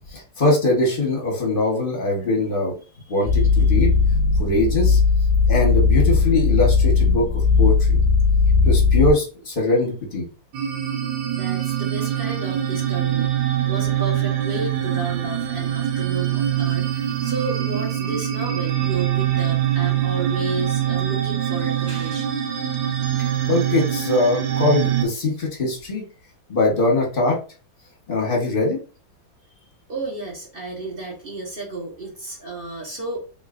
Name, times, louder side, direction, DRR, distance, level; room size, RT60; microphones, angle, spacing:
voice 1, 0.1-2.7 3.1-3.9 4.4-5.0 5.5-8.0 8.6-10.2 23.2-26.0 26.5-27.4 28.1-28.8, left 2 dB, 35° left, -2 dB, 1.0 m, -22 dB
sound 1, 3.3-9.1, left 4 dB, 5° left, 1.1 m, -17 dB
sound 2, 10.5-25.0, right 11 dB, 80° right, 1.5 m, -24 dB
voice 2, 11.3-22.3 29.9-33.2, right 2 dB, 35° right, -3 dB, 1.1 m, -32 dB
3.8 x 3.1 x 2.5 m, 0.34 s
omnidirectional pair, 2.1 m